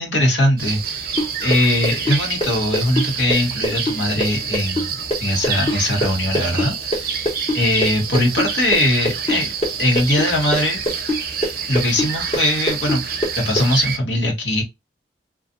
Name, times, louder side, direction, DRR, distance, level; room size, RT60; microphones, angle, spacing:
voice 1, 0.0-7.1 7.5-9.5 9.8-10.8 11.7-13.0 13.4-14.6, left 1 dB, 85° left, 1.2 m, -20 dB
sound 1, 0.6-14.0, right 7 dB, 50° right, 0.4 m, -28 dB
sound 2, 1.2-8.8 9.1-13.7, equal, 35° left, 0.8 m, -23 dB
2.5 x 2.3 x 2.5 m
head